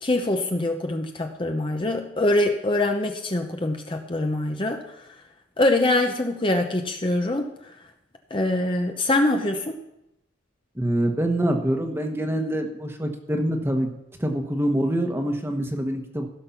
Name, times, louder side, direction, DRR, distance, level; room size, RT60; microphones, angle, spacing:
voice 1, 0.0-4.8 5.6-7.5 8.3-9.8, left 2 dB, 25° left, 4 dB, 0.7 m, -24 dB
voice 2, 10.8-13.9 14.2-16.3, right 1 dB, 10° right, 4 dB, 1.2 m, -25 dB
16.0 x 6.6 x 5.8 m, 0.83 s
head